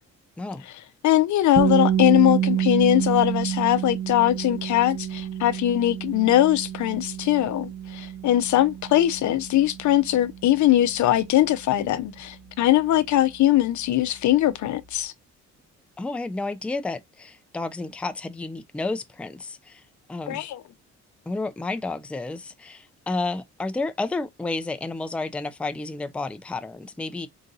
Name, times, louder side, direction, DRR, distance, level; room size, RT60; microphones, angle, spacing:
voice 1, 1.0-15.1 20.3-20.6, left 13 dB, 70° left, 0.6 m, -21 dB
sound 1, 1.5-13.4, right 10 dB, 35° right, 1.2 m, -29 dB
voice 2, 16.0-19.8 20.1-20.4 21.3-27.3, left 3 dB, 5° left, 0.4 m, -31 dB
3.9 x 2.5 x 3.8 m
cardioid pair, 90°, 30 cm